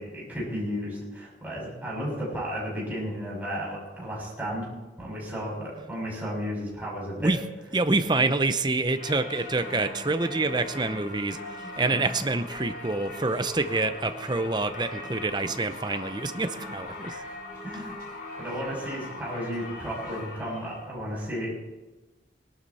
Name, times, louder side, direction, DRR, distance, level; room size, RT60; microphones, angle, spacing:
voice 1, 0.0-4.7 5.0-7.3 16.6-16.7 17.6-17.9 18.4-21.6, equal, 10° right, -5 dB, 6.5 m, -33 dB
voice 2, 7.7-17.2, right 3 dB, 25° right, 9 dB, 0.7 m, -27 dB
Singing / Church bell, 8.9-20.9, left 2 dB, 50° left, 6.2 m, -40 dB
19.5 x 12.0 x 4.3 m, 1.1 s
head